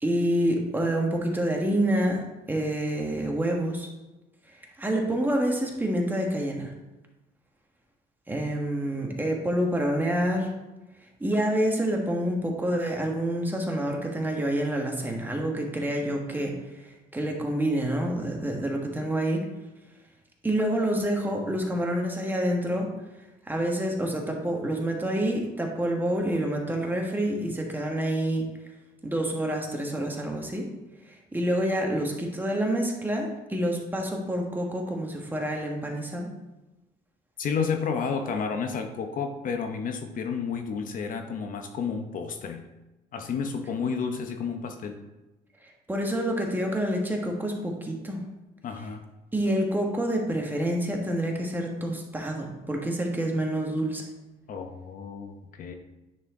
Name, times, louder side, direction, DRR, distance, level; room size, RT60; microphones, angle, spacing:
voice 1, 0.0-2.2 2.5-3.9 4.8-6.7 8.3-10.5 11.2-16.5 17.1-19.4 20.4-22.9 23.5-28.4 29.0-30.7 31.3-36.3 45.9-48.2 49.3-54.0, right 1 dB, 10° right, 1 dB, 1.4 m, -27 dB
voice 2, 37.4-42.6 43.1-45.0 48.6-49.0 54.5-55.7, left 6 dB, 55° left, 5 dB, 0.8 m, -31 dB
9.9 x 4.3 x 3.7 m, 1.0 s
cardioid pair, 110°, 17 cm